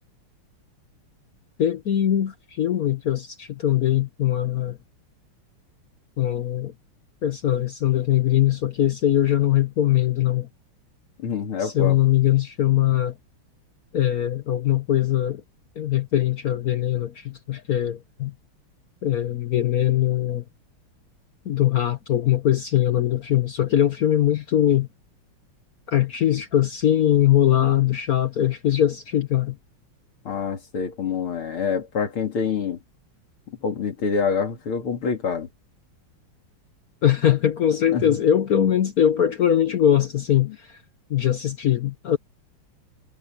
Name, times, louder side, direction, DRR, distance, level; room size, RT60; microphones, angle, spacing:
voice 1, 1.6-4.8 6.2-6.7 7.2-10.5 11.6-13.1 13.9-15.4 15.8-18.3 19.0-20.4 21.5-24.9 25.9-29.6 37.0-40.8 41.1-42.2, left 11 dB, 60° left, 1.0 m, -21 dB
voice 2, 11.2-12.0 30.2-32.8 33.6-35.5 37.9-38.0 40.5-40.6, left 6 dB, 75° left, 3.4 m, -26 dB
omnidirectional pair, 2.4 m